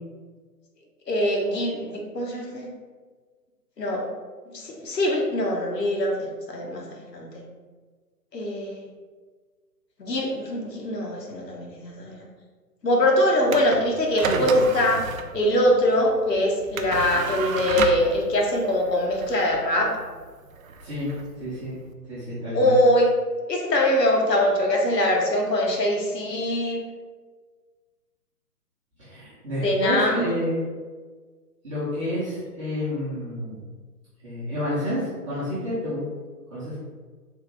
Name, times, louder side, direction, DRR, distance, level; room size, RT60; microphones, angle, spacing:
voice 1, 1.1-2.7 3.8-4.1 4.5-6.9 7.1-7.3 8.3-8.8 10.0-12.2 12.8-15.0 15.3-19.9 22.5-23.1 23.5-26.8 29.6-30.3, left 1 dB, 85° left, -1 dB, 1.0 m, -23 dB
sound 1, 13.4-21.9, right 4 dB, 60° right, 0.5 m, -32 dB
voice 2, 20.8-21.1 21.4-21.8 22.1-22.8 29.0-30.6 31.6-33.7 34.2-36.1 36.5-36.8, equal, 20° right, -11 dB, 0.7 m, -29 dB
3.4 x 2.5 x 3.3 m, 1.5 s
figure-of-eight pair, 135°, 48 cm